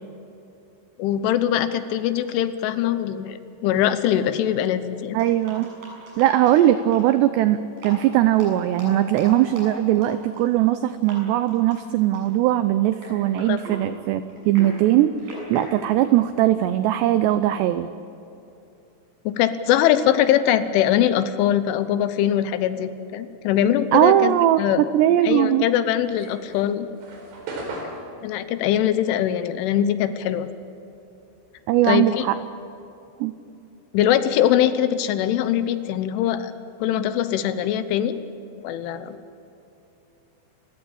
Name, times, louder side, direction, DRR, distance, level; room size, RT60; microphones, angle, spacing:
voice 1, 1.0-5.2 13.5-13.6 19.3-24.8 25.2-26.9 28.2-30.5 31.8-32.3 33.9-36.5 36.8-38.2 38.6-39.2, left 10 dB, 80° left, 11 dB, 3.3 m, -22 dB
sound 1, 2.2-2.3 2.7-2.8 3.8-3.9 4.1-4.2 5.2-7.1 7.7-8.0 8.3-10.8 11.0-11.2 11.5-11.8 12.1-12.5 12.9-16.8, equal, 45° right, 8.9 m, -39 dB
voice 2, 5.1-5.7 6.2-17.9 23.9-25.7 31.7-32.4 33.2-33.3, right 13 dB, 90° right, 12 dB, 2.4 m, -20 dB
sound 2, 26.0-30.8 31.0-33.0, right 2 dB, 70° right, 6.6 m, -38 dB
30.0 x 15.5 x 8.7 m, 2.9 s
omnidirectional pair, 5.8 m